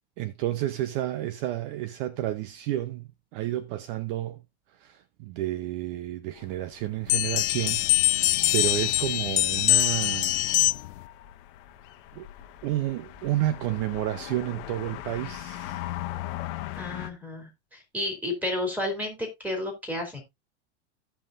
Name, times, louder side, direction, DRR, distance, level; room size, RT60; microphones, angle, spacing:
voice 1, 0.2-4.4 4.7-10.4 12.1-12.3 12.6-15.8, right 14 dB, 50° right, 0.7 m, -31 dB
sound 1, 6.4-17.1, left 13 dB, 50° left, 1.1 m, -40 dB
sound 2, 7.1-11.0, left 17 dB, 75° left, 0.5 m, -23 dB
voice 2, 16.8-20.2, left 1 dB, 5° right, 2.9 m, -32 dB
16.0 x 5.6 x 2.5 m
supercardioid pair, 125°, 34 cm